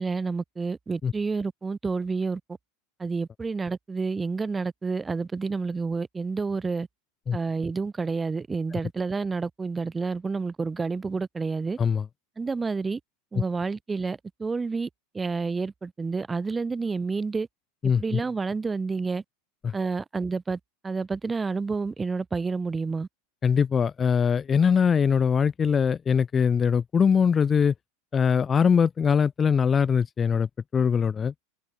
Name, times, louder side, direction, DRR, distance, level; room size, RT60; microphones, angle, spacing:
voice 1, 0.0-2.4 3.0-6.9 7.3-11.8 12.4-13.0 13.3-14.9 15.1-17.5 18.0-19.2 19.7-20.6 20.8-23.1, right 4 dB, 15° right, 1.1 m, -29 dB
voice 2, 17.8-18.2 19.6-19.7 23.4-27.7 28.1-30.5 30.7-31.3, left 6 dB, 25° left, 0.5 m, -22 dB
open air
hypercardioid pair, 95°, 0 cm